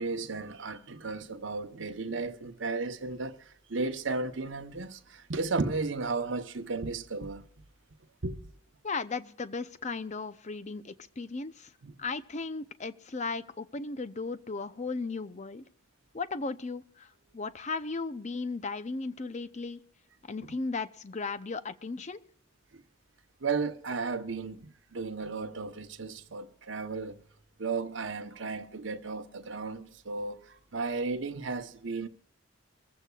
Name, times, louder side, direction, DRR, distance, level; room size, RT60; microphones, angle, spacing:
voice 1, 0.0-7.4 8.2-8.4 11.8-11.9 22.7-22.8 23.4-27.2 27.6-30.4 30.7-32.1, right 4 dB, 70° right, 0.9 m, -34 dB
voice 2, 8.8-11.7 12.0-15.7 16.1-19.8 20.2-22.2, left 4 dB, 35° left, 0.6 m, -36 dB
24.0 x 15.0 x 2.4 m
head